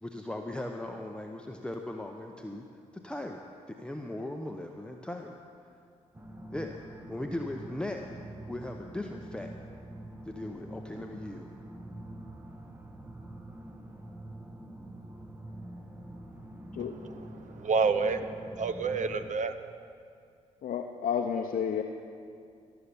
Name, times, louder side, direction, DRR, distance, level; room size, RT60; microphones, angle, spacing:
voice 1, 0.0-2.7 2.9-3.4 3.7-5.4 6.5-6.8 7.1-8.0 8.5-9.5 10.3-11.5, left 1 dB, 5° left, 2 dB, 0.8 m, -38 dB
sound 1, 6.1-19.3, right 1 dB, 15° right, 1.2 m, -45 dB
voice 2, 16.8-18.3 18.5-19.5, right 4 dB, 55° right, 11 dB, 0.8 m, -29 dB
voice 3, 20.6-21.8, left 7 dB, 60° left, 3 dB, 0.7 m, -31 dB
15.0 x 6.9 x 7.0 m, 2.3 s
supercardioid pair, 50°, 15 cm